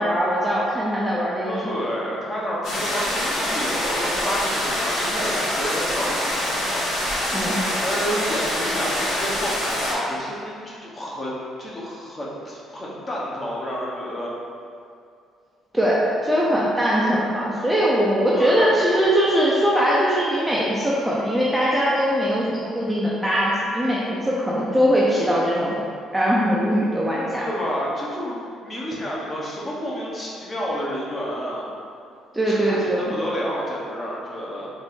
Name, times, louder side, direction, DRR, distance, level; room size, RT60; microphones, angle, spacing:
voice 1, 0.0-1.6 7.3-7.6 15.7-25.7 26.1-27.4 32.3-33.2, equal, 5° right, -6 dB, 0.5 m, -21 dB
voice 2, 1.4-7.1 7.8-14.3 18.4-18.7 27.4-28.4 28.6-31.7 32.5-34.7, equal, 25° left, -5 dB, 0.9 m, -30 dB
sound 1, 2.6-9.9, left 1 dB, 70° left, 1.1 m, -25 dB
4.2 x 2.6 x 3.5 m, 2.4 s
cardioid pair, 120°, 0 cm